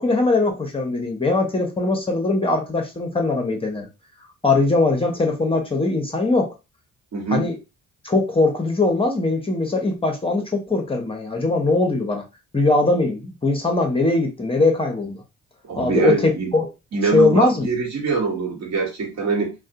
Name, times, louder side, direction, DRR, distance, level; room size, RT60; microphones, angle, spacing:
voice 1, 0.0-3.9 4.4-6.5 7.3-7.6 8.0-12.2 12.5-15.2 15.8-16.7 17.1-17.7, left 2 dB, 20° left, 3 dB, 0.6 m, -21 dB
voice 2, 7.1-7.5 15.7-16.5 16.9-19.5, right 4 dB, 60° right, 1 dB, 1.2 m, -23 dB
2.6 x 2.1 x 2.6 m, 0.26 s
cardioid pair, 90°, 30 cm